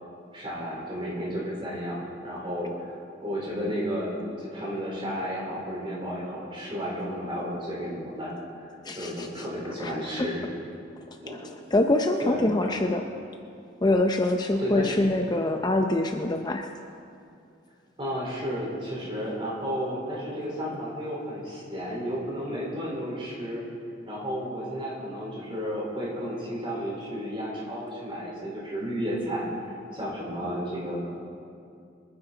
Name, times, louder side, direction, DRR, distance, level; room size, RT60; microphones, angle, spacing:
voice 1, 0.3-8.3 8.6-8.7 9.0-10.4 11.2-11.4 12.2-12.7 14.6-15.0 18.0-23.6 24.1-29.5 29.9-31.1, equal, 30° right, -4 dB, 4.2 m, -32 dB
voice 2, 8.8-9.3 9.8-9.9 10.2-10.3 11.7-13.0 13.8-16.7, left 2 dB, 20° left, 4 dB, 0.6 m, -24 dB
25.5 x 9.7 x 4.0 m, 2.5 s
head